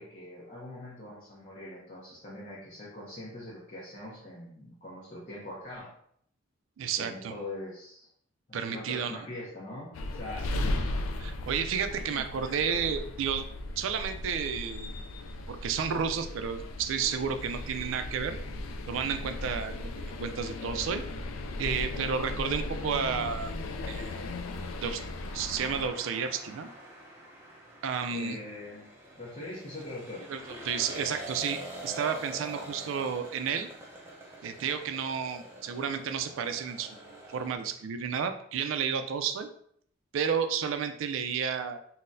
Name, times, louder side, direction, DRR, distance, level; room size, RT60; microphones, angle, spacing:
voice 1, 0.0-5.9 7.0-8.1 8.5-10.6 28.1-28.9 29.1-30.3, left 1 dB, 40° left, -7 dB, 0.7 m, -42 dB
voice 2, 6.8-7.3 8.5-9.2 11.2-13.4 13.8-15.0 15.5-18.4 18.9-21.0 21.6-23.5 23.9-24.2 24.8-25.0 25.3-26.7 27.8-28.4 30.3-30.4 30.6-33.7 34.4-37.0 37.3-39.5 40.1-41.8, right 7 dB, 70° right, 9 dB, 0.3 m, -31 dB
sound 1, 9.9-25.9, left 2 dB, 80° left, 0.3 m, -37 dB
sound 2, 24.1-37.6, right 1 dB, 10° right, 0.5 m, -45 dB
3.9 x 2.1 x 2.5 m, 0.66 s
head